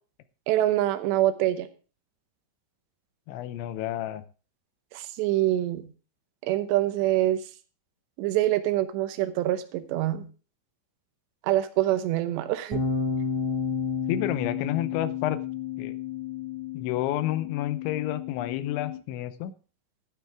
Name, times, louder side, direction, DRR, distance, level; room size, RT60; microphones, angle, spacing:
voice 1, 0.5-1.7 4.9-5.9 6.4-7.4 8.2-10.2 11.4-12.8, right 14 dB, 75° right, 10 dB, 3.0 m, -25 dB
voice 2, 3.3-4.2 14.1-15.4 15.8-15.9 16.7-19.5, left 13 dB, 85° left, 13 dB, 3.0 m, -30 dB
sound 1, 12.7-19.0, left 6 dB, ahead, 4.3 m, -31 dB
12.0 x 10.5 x 3.5 m, 0.36 s
omnidirectional pair, 5.3 m